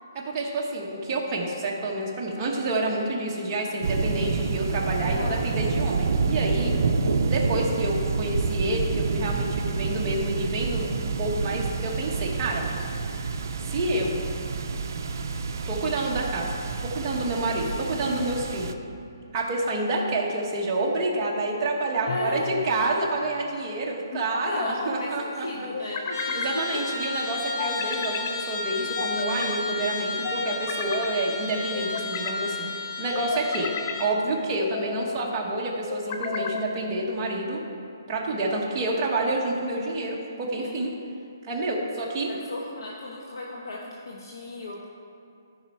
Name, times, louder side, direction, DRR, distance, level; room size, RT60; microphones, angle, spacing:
voice 1, 0.1-6.8 7.3-12.6 13.6-14.2 15.7-16.5 16.8-18.7 19.3-25.7 26.3-32.7 33.0-33.7 34.0-37.6 38.1-40.9 41.4-42.3, right 2 dB, 20° right, -4 dB, 1.1 m, -28 dB
sound 1, 3.8-18.7, right 4 dB, 55° right, 0.6 m, -28 dB
voice 2, 5.0-5.4 17.7-17.9 22.0-22.5 24.4-26.8 40.6-41.0 42.0-44.9, left 2 dB, 75° left, -2 dB, 1.1 m, -35 dB
sound 2, 22.1-22.7 24.1-24.9 25.7-26.5 27.6-28.3 29.0-29.6 30.2-31.1 31.7-32.4 33.1-34.0 34.6-35.1 35.9-36.7, left 5 dB, 30° left, 0.5 m, -34 dB
Trumpet, 26.1-34.2, left 3 dB, 60° left, 2.0 m, -32 dB
13.5 x 5.4 x 4.3 m, 2.5 s
hypercardioid pair, 170°, 2 cm